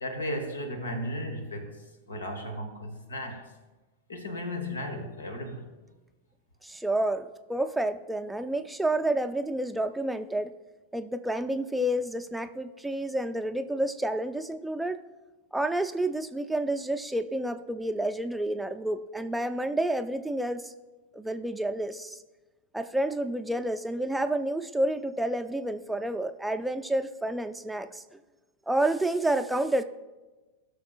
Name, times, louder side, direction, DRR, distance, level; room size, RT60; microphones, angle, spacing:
voice 1, 0.0-1.7 2.1-3.5 4.1-5.7, left 1 dB, 75° left, 1.2 m, -35 dB
voice 2, 6.6-10.5 10.9-15.0 15.5-20.7 21.1-22.2 22.7-28.0 28.7-29.8, right 1 dB, 5° right, 0.5 m, -29 dB
17.5 x 6.5 x 2.4 m
figure-of-eight pair, 90°, 0 cm